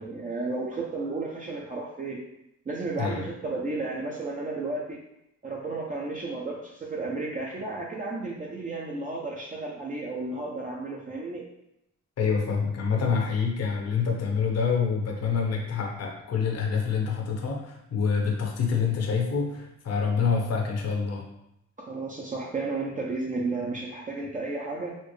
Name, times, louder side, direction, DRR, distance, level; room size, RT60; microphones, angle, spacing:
voice 1, 0.0-2.2 2.7-5.0 5.4-11.4 21.9-25.0, right 3 dB, 25° right, -3 dB, 0.5 m, -33 dB
voice 2, 12.2-21.3, left 5 dB, 55° left, 1 dB, 0.8 m, -26 dB
4.2 x 2.0 x 3.1 m, 0.83 s
cardioid pair, 90°, 30 cm